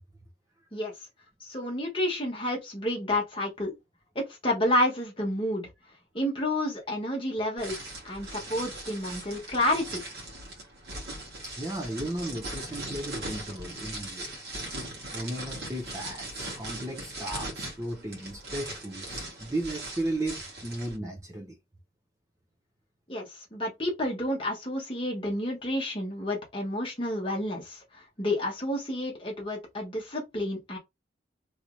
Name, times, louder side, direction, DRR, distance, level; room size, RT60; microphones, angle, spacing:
voice 1, 1.5-3.7 4.1-5.7 6.1-7.7 8.0-10.0 23.1-27.8 28.2-30.8, left 1 dB, 30° left, 1.3 m, -30 dB
sound 1, 7.6-21.0, right 1 dB, 60° right, 1.5 m, -39 dB
voice 2, 11.3-14.4 14.7-21.6, right 1 dB, 15° right, 0.6 m, -35 dB
3.1 x 2.9 x 2.6 m
head